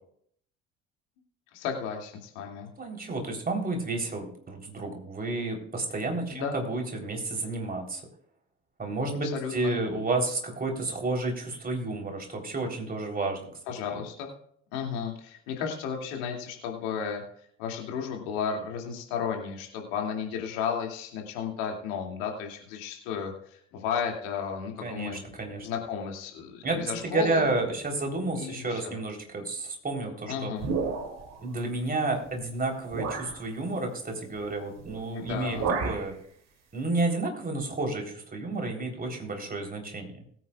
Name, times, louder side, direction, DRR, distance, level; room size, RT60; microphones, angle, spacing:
voice 1, 1.5-2.7 6.3-6.6 9.2-9.8 13.7-14.3 14.7-17.2 17.6-25.2 25.6-27.5 28.3-28.9 30.3-30.7 35.1-35.8, left 7 dB, 60° left, 1 dB, 2.6 m, -33 dB
voice 2, 2.8-8.0 8.8-13.5 24.8-25.7 26.6-26.8 27.0-30.5 31.4-36.1 36.7-40.2, right 2 dB, 25° right, 1 dB, 3.8 m, -31 dB
sound 1, 30.6-31.4 32.3-32.4 32.9-33.4 34.8-35.0 35.3-36.1, right 5 dB, 45° right, 2.9 m, -31 dB
21.0 x 9.1 x 2.4 m, 0.64 s
figure-of-eight pair, 55°, 37 cm